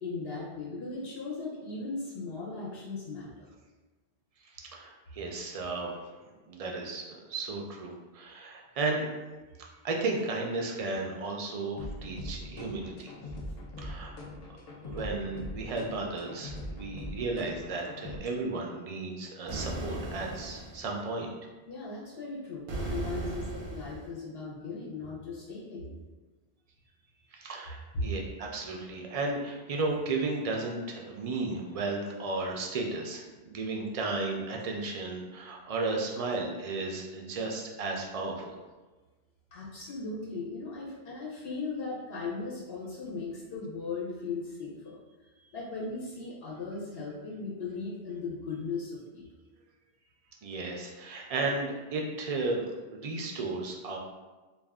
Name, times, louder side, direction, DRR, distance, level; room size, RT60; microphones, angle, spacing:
voice 1, 0.0-3.5 21.7-25.9 27.9-28.1 39.5-45.0 45.5-49.2, left 3 dB, 70° left, -6 dB, 1.0 m, -37 dB
voice 2, 4.5-6.1 6.5-9.1 9.8-13.1 13.8-14.1 14.9-21.3 27.3-38.6 50.4-52.6 52.9-54.0, right 3 dB, 55° right, 0 dB, 0.4 m, -34 dB
sound 1, 11.8-18.2, left 1 dB, 55° left, 0.4 m, -42 dB
sound 2, 19.5-20.9 22.7-24.1, right 2 dB, 90° right, 0.9 m, -37 dB
2.5 x 2.4 x 3.4 m, 1.2 s
omnidirectional pair, 1.1 m